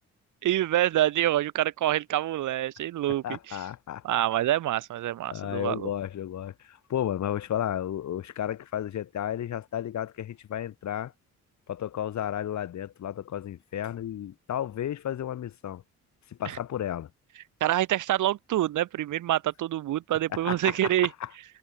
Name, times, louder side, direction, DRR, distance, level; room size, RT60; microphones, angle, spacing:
voice 1, 0.4-3.6 4.0-5.9 16.5-16.6 17.6-21.1, right 13 dB, 80° right, 5.9 m, -26 dB
voice 2, 3.2-4.0 5.3-11.1 11.7-15.8 16.4-17.1 20.3-21.3, left 10 dB, 65° left, 4.5 m, -33 dB
cardioid pair, 90°, 30 cm